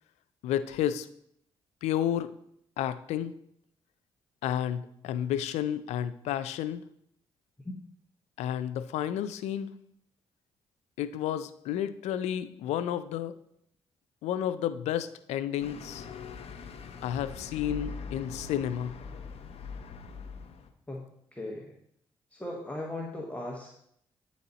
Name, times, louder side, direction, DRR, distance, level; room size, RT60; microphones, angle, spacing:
voice 1, 0.4-1.1 1.8-2.3 2.8-3.3 4.4-6.8 8.4-9.7 11.0-13.3 14.2-16.1 17.0-19.0, left 10 dB, 90° left, 13 dB, 0.4 m, -31 dB
sound 1, 15.6-20.7, left 5 dB, 65° left, 0.7 m, -42 dB
voice 2, 20.9-21.7 22.3-23.7, left 1 dB, 10° left, -1 dB, 1.1 m, -38 dB
9.0 x 4.2 x 4.0 m, 0.71 s
supercardioid pair, 60°, 11 cm